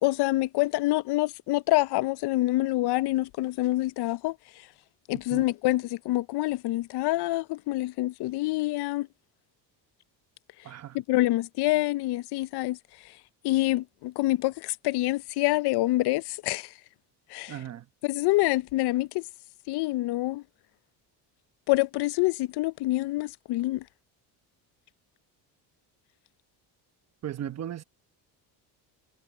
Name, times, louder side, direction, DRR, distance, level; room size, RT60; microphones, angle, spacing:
voice 1, 0.0-4.4 5.1-9.1 11.1-12.8 13.4-16.7 17.3-17.5 18.0-19.2 19.7-20.4 21.7-23.8, left 18 dB, 65° left, 0.6 m, -26 dB
voice 2, 10.6-11.0 17.5-17.9 27.2-27.8, right 10 dB, 35° right, 1.2 m, -36 dB
cardioid pair, 155°, 43 cm